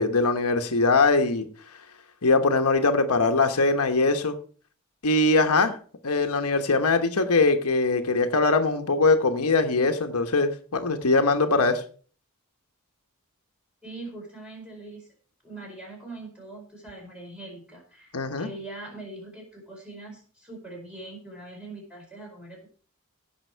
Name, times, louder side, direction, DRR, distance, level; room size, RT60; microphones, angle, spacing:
voice 1, 0.0-1.5 2.2-4.4 5.0-5.8 6.0-11.8 18.1-18.5, left 3 dB, 85° left, 6 dB, 1.1 m, -22 dB
voice 2, 13.8-15.1 15.4-22.7, right 2 dB, 5° right, -1 dB, 4.8 m, -42 dB
16.5 x 6.2 x 4.5 m, 0.43 s
head